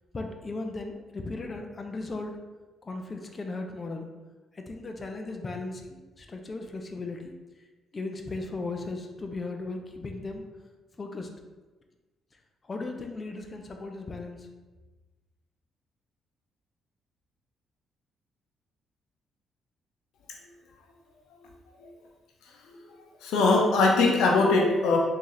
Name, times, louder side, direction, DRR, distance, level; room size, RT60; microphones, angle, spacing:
voice 1, 0.1-2.4 2.8-4.0 4.5-7.3 7.9-10.5 11.0-11.3 12.6-14.5, left 3 dB, 30° left, 4 dB, 0.5 m, -36 dB
voice 2, 23.2-25.0, left 3 dB, 85° left, -1 dB, 0.7 m, -21 dB
3.7 x 2.8 x 3.1 m, 1.2 s
cardioid pair, 90°, 0 cm